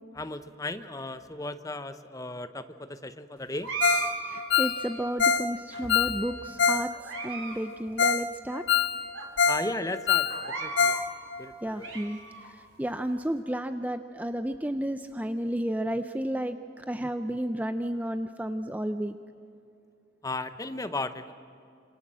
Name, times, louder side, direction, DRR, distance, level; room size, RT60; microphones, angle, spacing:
voice 1, 0.1-3.7 9.4-11.0 11.4-11.9 20.2-21.3, left 2 dB, 15° left, 11 dB, 0.8 m, -35 dB
sound 1, 3.6-5.0 5.7-6.4 6.9-7.6 7.9-8.0 8.7-8.8 9.1-9.3 10.2-11.1 11.5-12.5, right 4 dB, 85° right, 3.9 m, -36 dB
Ringtone, 3.8-4.1 4.4-6.9 7.1-7.2 7.7-7.8 8.0-8.3 8.5-9.7 9.9-11.1 11.3-11.4 11.9-12.0, left 6 dB, 65° left, 1.3 m, -25 dB
voice 2, 4.3-6.9 7.2-8.6 11.6-12.2 12.8-19.1, right 1 dB, 10° right, 9 dB, 0.5 m, -32 dB
27.0 x 26.5 x 7.6 m, 2.5 s
head